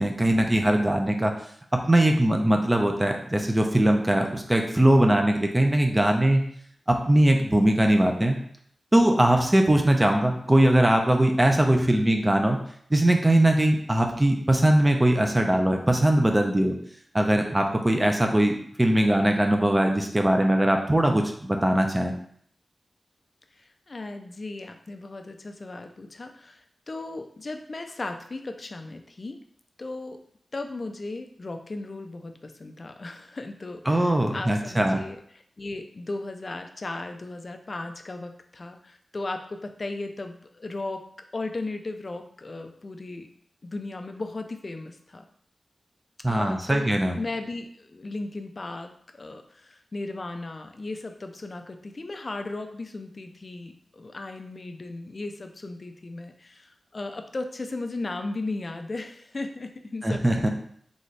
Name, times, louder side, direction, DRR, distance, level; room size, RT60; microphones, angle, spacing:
voice 1, 0.0-1.3 1.7-6.4 6.9-8.4 8.9-12.6 12.9-16.8 17.1-22.1 33.9-35.0 46.2-47.2 60.0-60.5, right 1 dB, 15° right, 3 dB, 0.6 m, -21 dB
voice 2, 23.6-29.4 29.8-30.2 30.5-41.0 41.3-43.3 43.6-45.2 46.3-60.2, left 2 dB, 40° left, 6 dB, 0.5 m, -36 dB
4.1 x 3.5 x 3.2 m, 0.64 s
wide cardioid pair, 125°, 0 cm